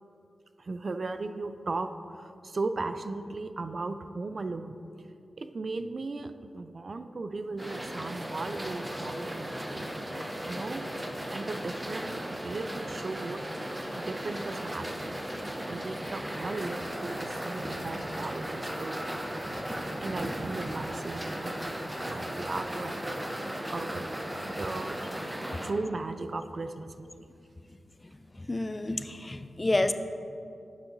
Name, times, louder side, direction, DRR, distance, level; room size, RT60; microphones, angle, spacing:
voice 1, 0.6-4.8 5.4-10.1 10.4-10.8 11.3-15.2 15.7-19.1 19.4-21.7 22.1-24.1 24.4-25.0 25.6-27.3, right 3 dB, 55° right, 9 dB, 0.3 m, -37 dB
sound 1, 7.6-25.7, equal, 15° right, 0.7 m, -36 dB
voice 2, 28.5-29.9, left 2 dB, 30° left, 10 dB, 0.3 m, -28 dB
9.6 x 5.9 x 2.6 m, 2.6 s
cardioid pair, 50°, 0 cm